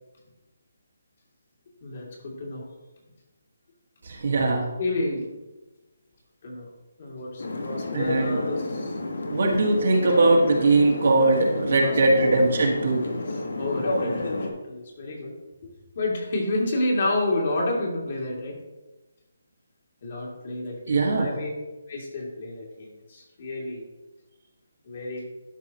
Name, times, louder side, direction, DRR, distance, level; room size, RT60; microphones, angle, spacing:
voice 1, 1.8-2.7 4.8-5.3 6.4-6.7 7.0-9.0 9.4-9.6 11.5-12.4 13.6-15.3 16.0-18.6 20.0-21.5 21.9-23.8 24.9-25.3, left 2 dB, 45° left, -2 dB, 2.2 m, -30 dB
voice 2, 4.0-4.7 7.9-8.4 9.3-13.1 20.9-21.4, right 2 dB, 60° right, 0 dB, 1.6 m, -21 dB
sound 1, 7.4-14.5, left 2 dB, 85° left, 1.2 m, -31 dB
12.0 x 4.9 x 2.9 m, 1.1 s
hypercardioid pair, 165°, 0 cm